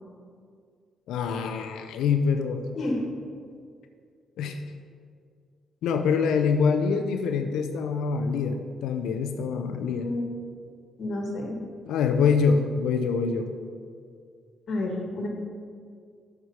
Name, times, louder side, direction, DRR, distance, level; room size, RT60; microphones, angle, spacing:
voice 1, 1.1-2.6 4.4-4.6 5.8-10.1 11.9-13.5, left 5 dB, 85° left, 7 dB, 0.5 m, -25 dB
voice 2, 11.0-11.6 14.7-15.3, left 2 dB, 60° left, 1 dB, 1.5 m, -29 dB
8.1 x 4.8 x 5.6 m, 2.2 s
cardioid pair, 90°, 0 cm